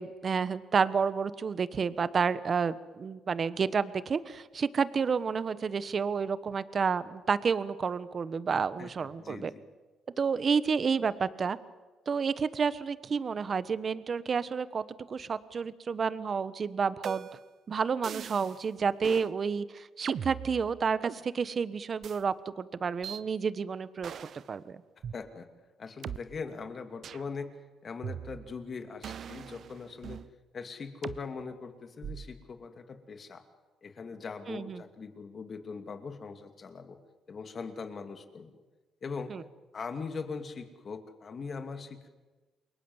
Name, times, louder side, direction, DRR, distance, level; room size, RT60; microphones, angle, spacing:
voice 1, 0.0-9.5 10.2-11.6 12.1-17.3 17.7-24.8 34.5-34.8 39.3-39.4, right 5 dB, 45° right, 15 dB, 1.2 m, -30 dB
voice 2, 9.2-9.6 25.1-25.5 25.8-27.5 27.8-30.2 30.5-33.4 33.8-37.0 37.3-38.5 39.0-39.3 39.7-42.1, left 5 dB, 45° left, 7 dB, 2.7 m, -41 dB
sound 1, 17.0-17.5 18.0-18.6 19.0-19.3 20.0-21.2 22.0-22.2 23.0-23.2 24.0-24.5 25.0-25.1 26.0-26.2 27.0-27.3 28.0-28.6 29.0-30.3 31.0-31.2 32.0-32.4, right 8 dB, 60° right, 0.9 m, -40 dB
28.5 x 22.5 x 8.1 m, 1.3 s
cardioid pair, 90°, 0 cm